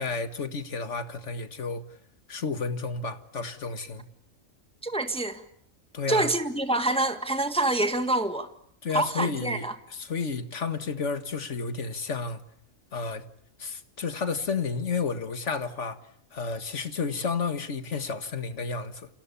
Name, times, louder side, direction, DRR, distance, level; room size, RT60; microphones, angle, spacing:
voice 1, 0.0-1.8 2.3-4.1 5.9-6.3 8.8-9.7 10.0-12.4 12.9-13.3 13.6-16.0 16.3-19.1, left 4 dB, 65° left, 2.1 m, -31 dB
voice 2, 4.8-5.4 6.1-8.5 8.9-9.7, right 2 dB, 5° left, 1.6 m, -26 dB
30.0 x 27.5 x 7.1 m
omnidirectional pair, 1.3 m